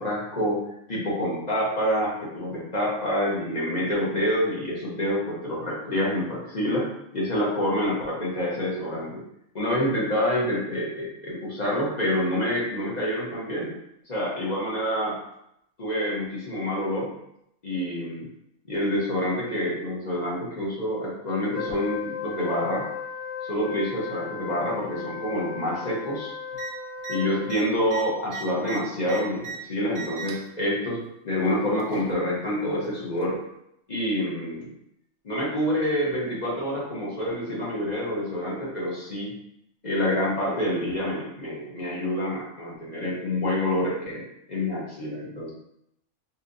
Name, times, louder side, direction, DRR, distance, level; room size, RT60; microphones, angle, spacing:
voice 1, 0.0-9.2 9.5-13.8 14.1-15.2 15.8-17.1 17.6-18.3 18.7-22.9 23.5-26.3 27.1-33.4 33.9-34.7 35.2-39.4 39.8-45.5, equal, 35° left, -5 dB, 0.8 m, -27 dB
Wind instrument woodwind instrument, 21.5-27.8, left 7 dB, 65° left, 0.9 m, -36 dB
sound 1, 26.5-26.7 27.0-27.2 27.4-29.6 29.9-30.5 31.4-32.1 33.2-33.3, right 6 dB, 60° right, 0.5 m, -37 dB
4.1 x 2.8 x 2.6 m, 0.78 s
omnidirectional pair, 1.5 m